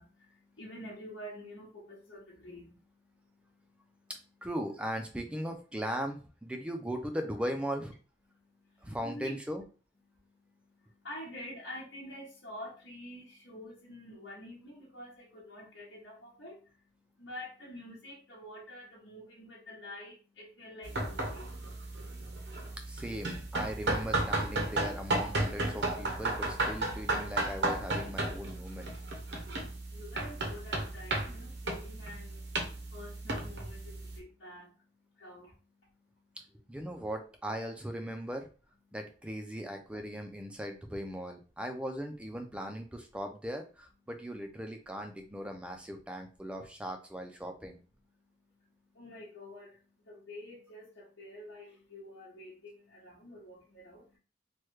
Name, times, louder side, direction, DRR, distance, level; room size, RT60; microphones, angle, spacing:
voice 1, 0.0-4.1 8.3-9.3 10.0-22.7 29.2-36.4 48.2-54.2, left 1 dB, 90° left, -8 dB, 1.0 m, -49 dB
voice 2, 4.4-7.9 8.8-9.6 22.9-28.9 36.7-38.5 38.9-47.8, equal, 5° right, 5 dB, 0.3 m, -38 dB
sound 1, 20.8-34.2, right 2 dB, 70° right, 0.7 m, -34 dB
3.1 x 2.2 x 3.1 m, 0.35 s
head